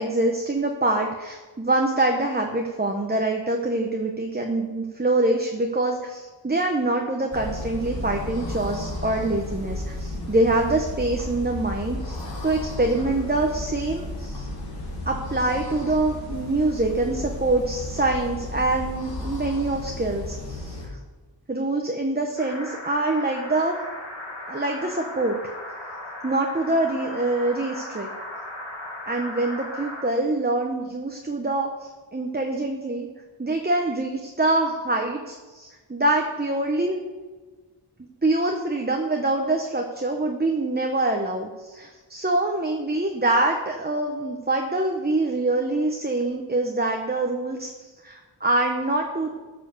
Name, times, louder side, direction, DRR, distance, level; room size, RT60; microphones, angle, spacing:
voice 1, 0.0-14.5 15.1-21.0 21.5-23.8 24.5-25.4 26.2-28.1 29.0-33.1 33.4-37.0 38.2-49.3, right 2 dB, 20° right, 2 dB, 1.0 m, -25 dB
sound 1, 7.3-20.9, left 1 dB, 55° left, 3.5 m, -34 dB
sound 2, 22.4-30.0, left 1 dB, 80° left, 2.6 m, -37 dB
14.5 x 5.0 x 6.9 m, 1.3 s
wide cardioid pair, 85°, 44 cm